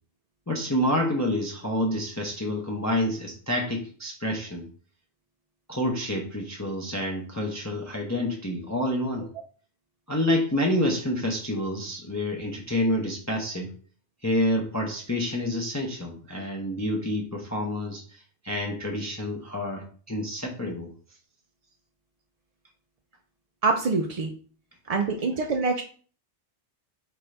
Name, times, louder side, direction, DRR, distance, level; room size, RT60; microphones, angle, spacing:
voice 1, 0.5-4.7 5.7-9.3 10.1-13.7 14.2-20.9, left 1 dB, 20° left, 0 dB, 0.6 m, -28 dB
voice 2, 23.6-24.3 24.9-25.8, right 4 dB, 50° right, 2 dB, 0.4 m, -25 dB
4.4 x 3.8 x 3.2 m, 0.41 s
omnidirectional pair, 1.2 m